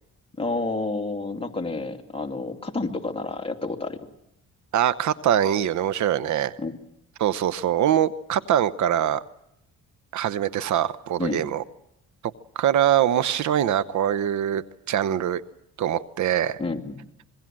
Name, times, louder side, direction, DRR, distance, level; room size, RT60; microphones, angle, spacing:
voice 1, 0.4-4.1 6.6-6.7 11.2-11.4 16.6-17.0, left 3 dB, 20° left, 2 dB, 2.5 m, -29 dB
voice 2, 4.7-6.5 7.2-9.2 10.1-11.6 12.6-15.4 15.8-16.6, right 10 dB, 70° right, 15 dB, 0.9 m, -23 dB
26.0 x 22.0 x 7.6 m, 0.82 s
cardioid pair, 90°, 30 cm